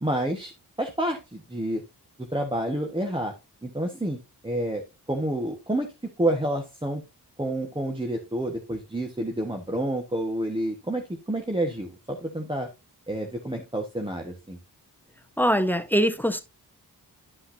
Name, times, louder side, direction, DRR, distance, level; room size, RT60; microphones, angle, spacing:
voice 1, 0.0-0.5 0.8-1.8 2.2-3.3 3.6-5.9 6.2-7.0 7.4-12.7 13.1-14.6, right 1 dB, 15° right, 1.4 m, -29 dB
voice 2, 15.4-16.4, equal, 5° left, 1.1 m, -22 dB
12.0 x 5.5 x 2.7 m
cardioid pair, 50°, 40 cm